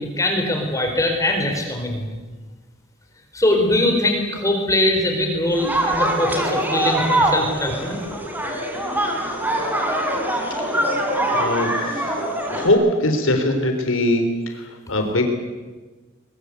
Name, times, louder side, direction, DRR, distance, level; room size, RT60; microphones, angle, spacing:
voice 1, 0.2-2.1 3.3-8.0, left 1 dB, 15° left, 3 dB, 4.5 m, -21 dB
sound 1, 5.5-12.7, right 1 dB, 10° right, 4.3 m, -23 dB
voice 2, 10.6-10.9 11.3-12.2 12.5-15.3, left 1 dB, 70° left, 5 dB, 3.8 m, -21 dB
23.5 x 22.0 x 8.3 m, 1.3 s
head